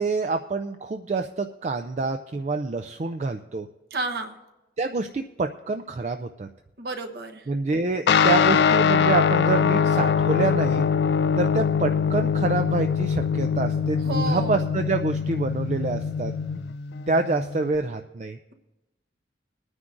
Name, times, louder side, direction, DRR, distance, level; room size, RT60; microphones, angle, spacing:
voice 1, 0.0-3.7 4.8-6.5 7.5-10.8 11.4-16.3 17.1-18.4, right 3 dB, 40° right, 7 dB, 0.4 m, -27 dB
voice 2, 3.9-4.3 6.8-7.4 14.0-14.5, right 2 dB, 60° right, 4 dB, 1.0 m, -30 dB
Guitar, 8.1-17.8, left 6 dB, 65° left, 0.3 m, -23 dB
23.5 x 9.7 x 2.5 m, 1.0 s
head